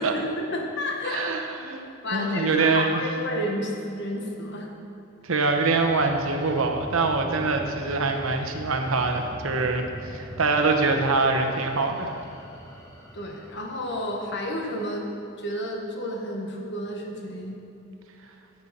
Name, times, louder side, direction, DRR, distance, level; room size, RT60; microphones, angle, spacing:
voice 1, 0.0-1.3 2.0-4.7 13.1-15.1 15.4-17.6, left 1 dB, 55° left, 1 dB, 1.3 m, -31 dB
voice 2, 1.1-1.9 2.1-3.0 5.2-9.8 10.1-12.1, right 3 dB, 90° right, 4 dB, 0.9 m, -24 dB
sound 1, 5.3-15.0, equal, 15° left, 0.9 m, -42 dB
14.5 x 5.6 x 4.2 m, 2.7 s
head